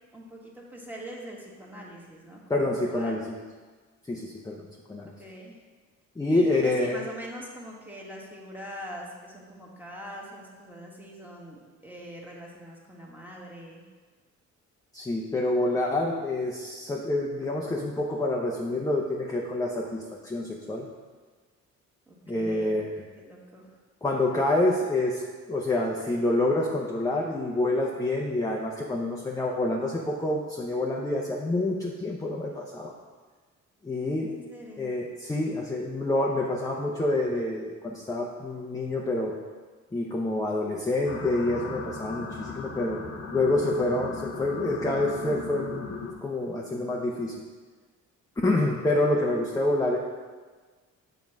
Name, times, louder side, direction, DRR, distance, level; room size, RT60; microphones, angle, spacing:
voice 1, 0.1-3.3 5.1-5.6 6.2-13.8 22.1-22.8 23.2-23.7 34.3-34.9, equal, 5° right, -3 dB, 1.6 m, -43 dB
voice 2, 2.5-3.2 4.1-5.1 6.2-7.0 14.9-20.9 22.3-22.9 24.0-25.2 25.5-32.9 33.8-34.3 34.8-39.4 39.9-43.0 43.3-45.9 46.2-47.3 48.4-50.0, left 2 dB, 10° left, -1 dB, 0.7 m, -27 dB
sound 1, 41.1-46.1, left 5 dB, 60° left, 1.0 m, -37 dB
7.2 x 3.9 x 6.0 m, 1.4 s
cardioid pair, 90°, 30 cm